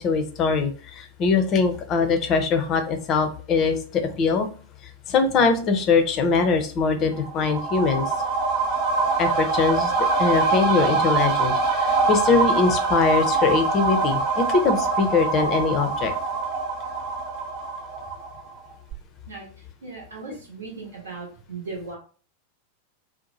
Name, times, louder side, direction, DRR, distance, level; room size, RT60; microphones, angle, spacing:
voice 1, 0.0-4.5 5.1-8.1 9.2-9.9 10.2-16.1, left 4 dB, 35° left, 6 dB, 0.5 m, -22 dB
sound 1, 7.1-18.6 18.9-19.0, right 4 dB, 40° right, 0.9 m, -24 dB
voice 2, 19.3-22.0, right 3 dB, 70° right, -2 dB, 0.9 m, -38 dB
2.7 x 2.1 x 3.0 m, 0.40 s
figure-of-eight pair, 90°, 0 cm